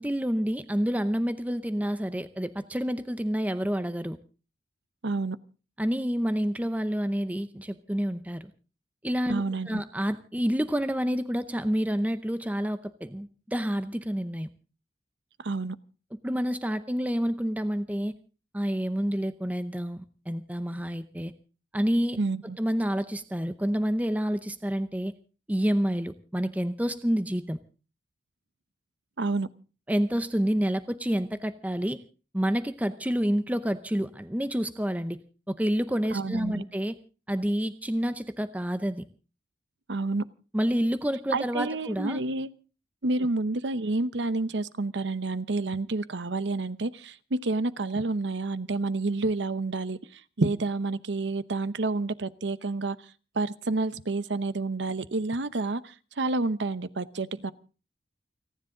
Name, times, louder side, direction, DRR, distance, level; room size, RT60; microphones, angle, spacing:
voice 1, 0.0-4.2 5.8-8.5 9.0-14.5 16.2-18.1 18.5-21.3 21.7-22.2 22.6-25.1 25.5-27.6 29.9-32.0 32.3-35.2 35.5-37.0 37.3-39.0 40.5-42.2, equal, 10° right, 12 dB, 0.7 m, -28 dB
voice 2, 5.0-5.4 9.3-9.8 15.4-15.8 22.2-22.6 29.2-29.5 36.1-36.6 39.9-40.3 41.3-42.5 43.0-53.0 53.3-57.5, right 3 dB, 80° right, 15 dB, 0.8 m, -29 dB
29.5 x 10.5 x 3.8 m, 0.36 s
head